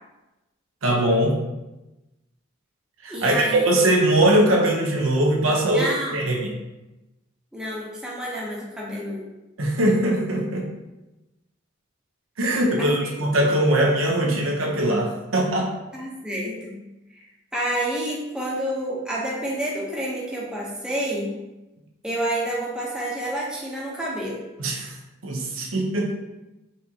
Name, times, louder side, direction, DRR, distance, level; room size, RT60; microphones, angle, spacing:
voice 1, 0.8-1.4 3.0-5.8 6.1-6.5 9.6-10.7 12.4-15.7 24.6-24.9 25.2-26.2, right 1 dB, 70° right, 0 dB, 0.8 m, -21 dB
voice 2, 3.1-3.6 5.6-6.2 7.5-9.3 13.0-13.1 15.9-16.7 17.1-17.3 17.5-21.3 22.0-24.4, right 1 dB, 5° right, -5 dB, 0.8 m, -29 dB
4.2 x 3.6 x 2.8 m, 1.0 s
head